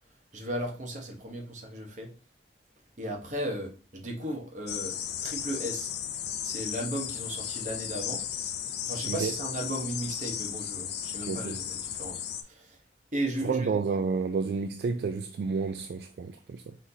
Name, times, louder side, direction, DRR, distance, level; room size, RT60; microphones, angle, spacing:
voice 1, 0.3-2.1 3.0-5.0 5.2-5.9 6.4-8.2 8.8-12.8 13.1-13.7, right 1 dB, 40° right, 1.1 m, -35 dB
sound 1, 4.7-12.4, left 9 dB, 65° left, 0.5 m, -35 dB
voice 2, 11.2-11.6 13.4-16.8, right 5 dB, 60° right, 0.3 m, -30 dB
4.3 x 3.9 x 2.7 m
head